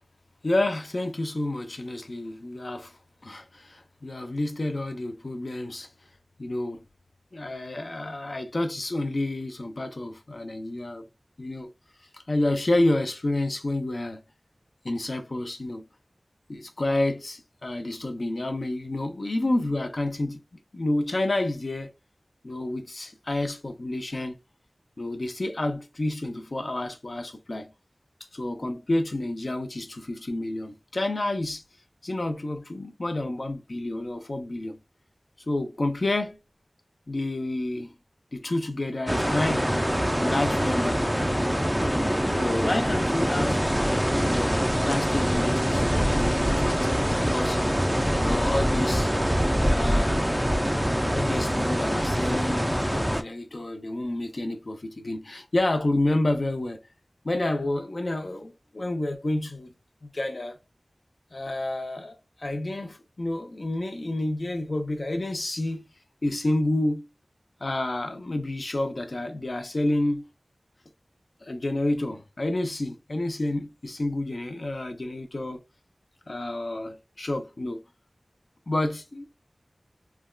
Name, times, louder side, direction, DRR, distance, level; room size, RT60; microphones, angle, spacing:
voice 1, 0.4-2.9 3.2-5.9 6.4-6.8 7.3-11.1 11.4-11.7 12.1-14.2 14.8-15.9 16.5-20.4 20.7-21.9 22.4-24.4 25.0-27.7 28.3-31.6 32.0-34.8 35.5-36.4 37.1-37.9 38.3-39.7 40.2-41.0 42.3-43.6 44.2-47.6 48.1-49.1 49.7-50.3 51.1-56.8 57.2-59.7 60.0-60.6 61.3-65.9 66.2-67.1 67.6-70.2 71.4-75.6 76.3-77.8 78.7-79.2, left 1 dB, 70° left, 0.6 m, -29 dB
sound 1, 39.1-53.2, equal, 5° right, 0.4 m, -24 dB
3.3 x 2.3 x 2.3 m
wide cardioid pair, 50°, 0 cm